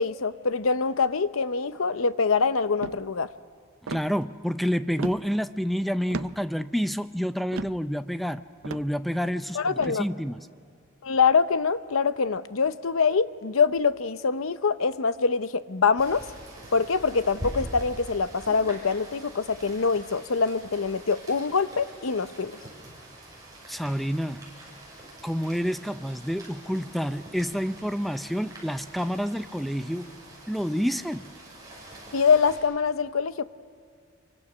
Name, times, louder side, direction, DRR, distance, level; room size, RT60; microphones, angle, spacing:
voice 1, 0.0-3.3 9.5-10.0 11.0-16.3 16.7-22.6 32.1-33.4, left 5 dB, 80° left, 13 dB, 0.8 m, -24 dB
sound 1, 2.8-3.1 3.9-4.1 5.0-5.3 6.1-6.4 7.5-7.9 8.6-8.9 9.8-9.9, right 4 dB, 70° right, 0.6 m, -35 dB
voice 2, 3.9-10.5 23.7-24.5 25.2-30.1 30.5-31.3, equal, ahead, 11 dB, 0.5 m, -29 dB
Rain, 16.0-32.6, right 1 dB, 20° right, 6.6 m, -44 dB
27.0 x 24.0 x 6.2 m, 2.3 s
head